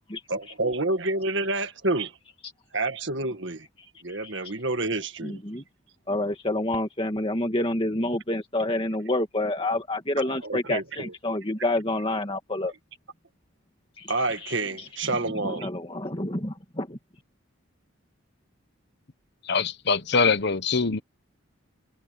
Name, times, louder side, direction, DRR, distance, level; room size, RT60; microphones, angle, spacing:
voice 1, 0.3-2.1 2.7-3.7 4.0-5.4 10.2-11.1 14.1-15.7, right 2 dB, 60° right, 1.7 m, -28 dB
voice 2, 4.1-4.5 5.2-5.6 6.1-12.7 14.0-17.0, left 1 dB, 25° left, 2.2 m, -29 dB
voice 3, 19.4-21.0, left 4 dB, 50° left, 1.0 m, -23 dB
head